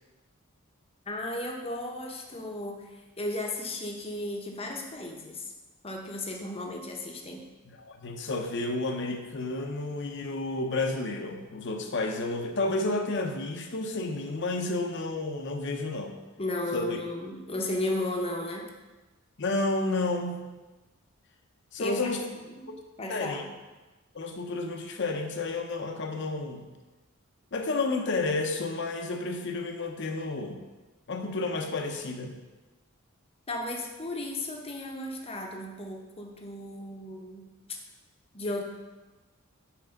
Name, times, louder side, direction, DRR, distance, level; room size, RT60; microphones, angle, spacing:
voice 1, 1.1-5.5 5.8-7.4 16.4-18.7 21.8-22.1 22.4-22.7 23.0-23.5 33.5-37.5 38.3-38.6, left 1 dB, 25° left, 1 dB, 0.8 m, -34 dB
voice 2, 7.8-16.1 16.7-17.0 19.4-20.4 21.7-22.2 23.1-23.4 24.1-26.7 27.5-30.7 31.1-32.4, left 2 dB, 55° left, 4 dB, 0.7 m, -31 dB
5.8 x 4.6 x 5.2 m, 1.2 s
head